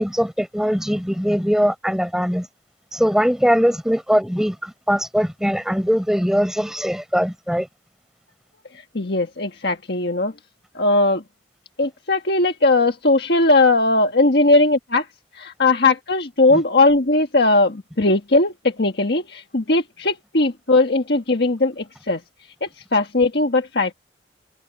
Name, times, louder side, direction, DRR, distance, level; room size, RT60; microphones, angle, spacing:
voice 1, 0.0-2.5 2.9-7.7 16.5-16.6, equal, 5° right, 5.4 m, -21 dB
voice 2, 8.9-10.3 10.7-11.2 11.8-15.1 15.3-22.2 22.6-23.9, left 2 dB, 60° left, 1.6 m, -19 dB
head